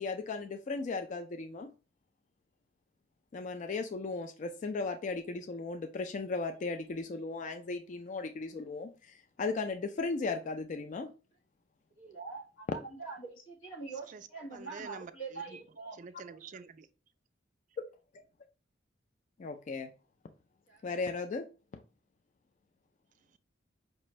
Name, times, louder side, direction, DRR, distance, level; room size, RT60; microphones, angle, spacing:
voice 1, 0.0-1.7 3.3-11.1 19.4-19.9 20.8-21.5 21.7-21.8, left 3 dB, 40° left, 0.3 m, -36 dB
voice 2, 12.0-16.5 20.7-20.8, right 4 dB, 90° left, 1.5 m, -44 dB
voice 3, 14.1-15.6 16.0-16.9, right 5 dB, 40° right, 0.3 m, -48 dB
5.4 x 2.5 x 3.0 m
head